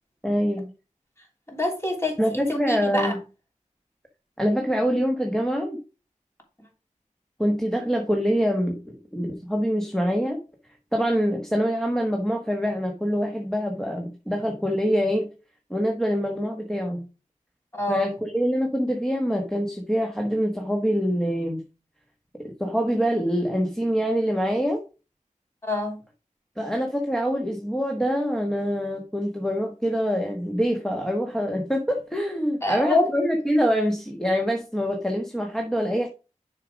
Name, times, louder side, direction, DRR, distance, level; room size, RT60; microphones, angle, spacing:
voice 1, 0.2-0.6 2.2-3.2 4.4-5.8 7.4-10.4 10.9-15.3 15.7-17.0 17.9-21.6 22.4-24.8 26.6-36.1, equal, 5° left, 1.2 m, -25 dB
voice 2, 1.5-3.1 17.7-18.1 25.6-26.0 32.6-33.1, left 2 dB, 20° left, 3.1 m, -26 dB
6.9 x 5.2 x 4.9 m
wide cardioid pair, 65°, 13 cm